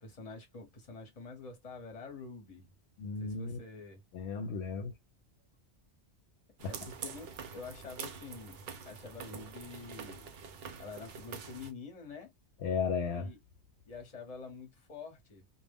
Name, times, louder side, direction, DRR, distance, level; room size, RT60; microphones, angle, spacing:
voice 1, 0.0-2.7 3.2-4.0 6.7-8.6 8.9-10.3 10.8-12.3 13.1-13.4 13.9-15.4, left 4 dB, 35° left, 0.9 m, -47 dB
voice 2, 3.0-3.6 4.1-4.9 6.6-6.7 12.6-13.3, left 5 dB, 70° left, 0.8 m, -34 dB
sound 1, 6.6-11.7, right 6 dB, 65° right, 0.7 m, -46 dB
2.2 x 2.0 x 3.4 m
omnidirectional pair, 1.2 m